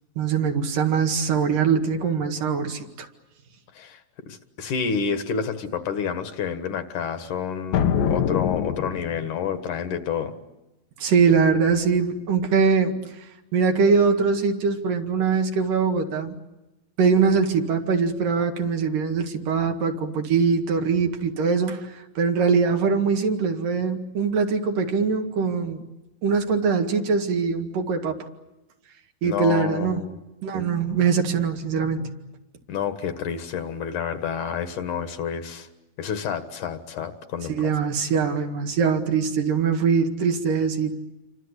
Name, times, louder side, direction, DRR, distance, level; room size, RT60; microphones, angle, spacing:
voice 1, 0.2-3.1 11.0-16.4 17.0-25.8 26.2-28.3 29.2-30.0 30.4-32.1 37.5-40.9, right 5 dB, 70° right, 4 dB, 3.6 m, -22 dB
voice 2, 3.7-10.3 29.2-30.2 32.7-35.7 36.0-37.7, left 7 dB, 65° left, 9 dB, 2.8 m, -29 dB
sound 1, 7.7-9.5, left 8 dB, 80° left, 2.9 m, -24 dB
28.5 x 25.0 x 8.2 m, 1.0 s
omnidirectional pair, 4.0 m